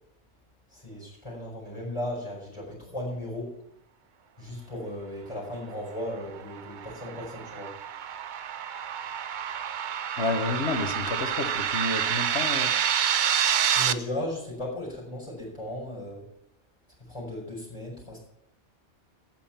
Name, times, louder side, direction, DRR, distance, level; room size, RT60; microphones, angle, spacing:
voice 1, 0.7-3.6 4.4-7.7 13.8-16.2 17.0-18.2, left 1 dB, 25° left, -4 dB, 5.2 m, -36 dB
sound 1, 6.2-13.9, right 8 dB, 55° right, 0.6 m, -28 dB
voice 2, 10.2-12.8, left 3 dB, 70° left, 7 dB, 1.7 m, -30 dB
13.0 x 9.2 x 5.9 m, 0.78 s
omnidirectional pair, 1.2 m